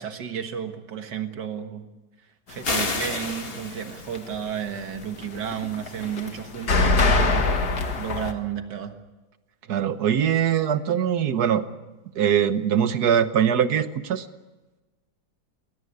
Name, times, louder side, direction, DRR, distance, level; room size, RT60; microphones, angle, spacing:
voice 1, 0.0-1.9 2.5-7.6 7.9-8.9, right 8 dB, 85° right, 7 dB, 2.1 m, -32 dB
sound 1, 2.6-3.7 4.0-8.3, left 3 dB, 65° left, 2.3 m, -24 dB
sound 2, 2.6-4.2, left 3 dB, 35° left, 2.0 m, -29 dB
voice 2, 9.7-11.6 12.1-14.2, right 8 dB, 70° right, 11 dB, 1.6 m, -22 dB
21.0 x 18.5 x 9.6 m, 1.2 s
omnidirectional pair, 1.8 m